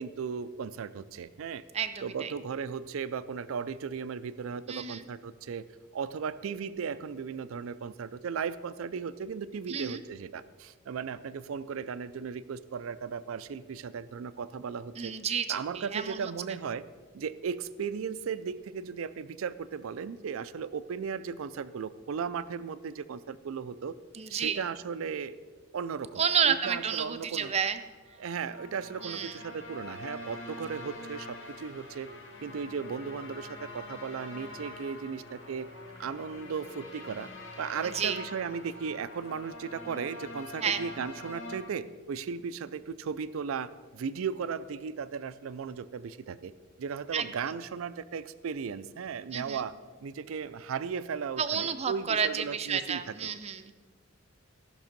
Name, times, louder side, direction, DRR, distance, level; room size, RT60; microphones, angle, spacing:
voice 1, 0.0-1.6 2.0-5.6 5.9-15.1 15.5-16.8 17.1-23.9 24.3-25.4 25.7-27.5 28.2-32.1 32.4-35.7 36.0-37.3 37.6-46.5 46.8-49.7 50.0-53.0, right 6 dB, 80° right, 15 dB, 0.4 m, -36 dB
voice 2, 1.7-2.3 4.7-5.0 9.7-10.0 14.9-16.3 24.1-24.6 26.2-27.8 29.0-29.4 37.8-38.2 40.6-40.8 47.1-47.3 49.3-49.6 51.4-53.7, right 7 dB, 30° right, 10 dB, 0.5 m, -30 dB
sound 1, 28.1-41.6, left 2 dB, 75° left, 2.1 m, -45 dB
15.0 x 6.0 x 5.2 m, 1.5 s
head